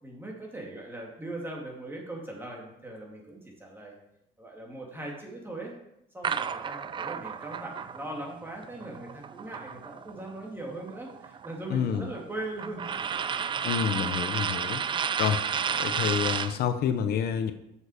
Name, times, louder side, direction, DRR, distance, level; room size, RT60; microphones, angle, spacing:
voice 1, 0.0-3.9 4.4-5.7 6.1-12.9, right 2 dB, 15° right, -1 dB, 2.5 m, -40 dB
sound 1, 6.2-10.3 10.6-16.6, right 7 dB, 30° right, 0.3 m, -32 dB
voice 2, 11.7-12.1 13.6-14.8 15.2-15.4 15.8-17.5, left 8 dB, 65° left, 9 dB, 0.6 m, -28 dB
7.2 x 6.4 x 5.0 m, 0.81 s
cardioid pair, 110°, 17 cm